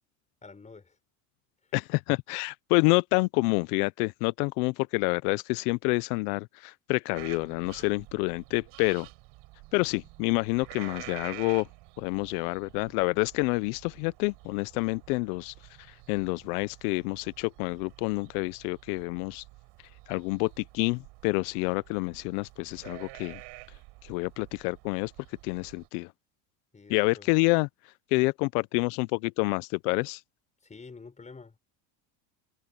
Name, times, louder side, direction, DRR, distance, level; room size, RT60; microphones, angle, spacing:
voice 1, 0.4-1.0 9.8-9.9 26.7-27.3 30.6-31.6, left 4 dB, 15° left, 6.4 m, -48 dB
voice 2, 1.7-9.1 9.7-11.7 12.0-15.5 15.9-19.4 20.1-23.4 24.0-25.1 25.4-26.1 26.9-27.7 28.1-30.2, left 26 dB, 85° left, 0.6 m, -28 dB
sound 1, 7.1-25.9, right 22 dB, 65° right, 6.8 m, -49 dB
cardioid pair, 140°, 45 cm